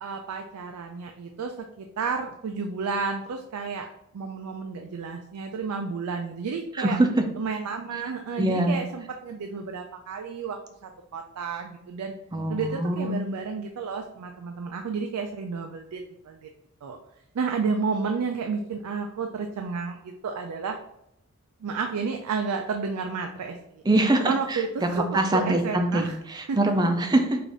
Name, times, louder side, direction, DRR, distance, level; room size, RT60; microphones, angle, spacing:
voice 1, 0.0-3.9 4.1-7.0 7.4-12.1 12.5-16.5 16.8-17.0 17.3-20.8 21.6-23.8 24.2-26.2 26.5-26.6, right 5 dB, 90° right, 4 dB, 0.4 m, -31 dB
voice 2, 6.7-7.2 8.4-8.8 12.3-13.2 23.9-27.4, right 1 dB, 20° right, 5 dB, 0.4 m, -24 dB
4.8 x 2.5 x 3.8 m, 0.80 s
head